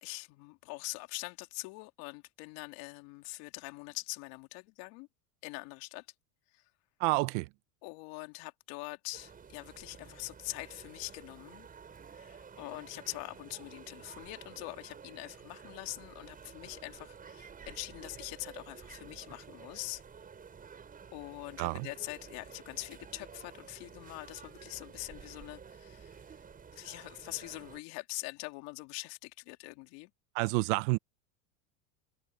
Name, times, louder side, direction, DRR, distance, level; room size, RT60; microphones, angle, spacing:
voice 1, 0.0-5.1 5.4-6.1 6.5-6.7 7.8-11.7 12.1-20.0 21.1-26.2 26.7-30.1, left 25 dB, 60° left, 2.9 m, -43 dB
voice 2, 7.0-7.5 21.6-21.9 30.3-31.0, right 24 dB, 60° right, 0.9 m, -29 dB
sound 1, 9.1-27.8, right 6 dB, 20° right, 7.1 m, -51 dB
supercardioid pair, 135°, 41 cm